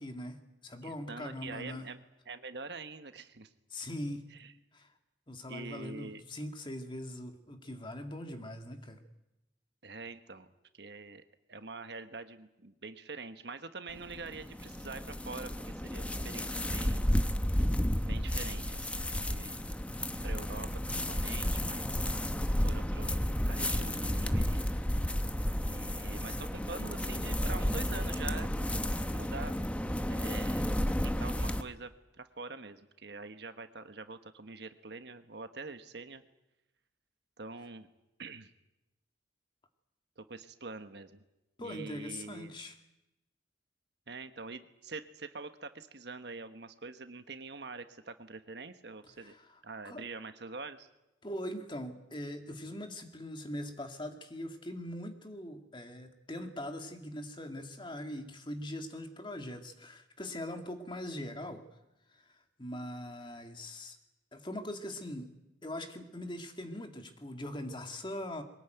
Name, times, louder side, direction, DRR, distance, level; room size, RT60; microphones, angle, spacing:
voice 1, 0.0-1.9 3.7-4.3 4.7-4.9 5.3-9.0 41.6-42.8 49.2-49.4 49.8-50.0 51.2-61.6 62.1-64.0 64.3-65.3 65.6-68.4, left 1 dB, 25° left, 5 dB, 2.1 m, -41 dB
voice 2, 0.8-2.0 2.3-3.5 4.3-4.5 5.5-6.2 9.8-10.5 10.7-11.2 11.5-17.1 18.1-19.6 20.2-22.2 22.6-24.9 25.6-28.5 29.1-30.7 31.0-36.2 37.4-37.9 38.2-38.5 40.2-41.2 41.6-42.6 44.1-49.3 49.6-50.9, right 3 dB, 60° right, 9 dB, 1.3 m, -45 dB
sound 1, 13.9-31.6, equal, 5° left, 0.9 m, -32 dB
23.0 x 19.0 x 9.2 m, 0.94 s
head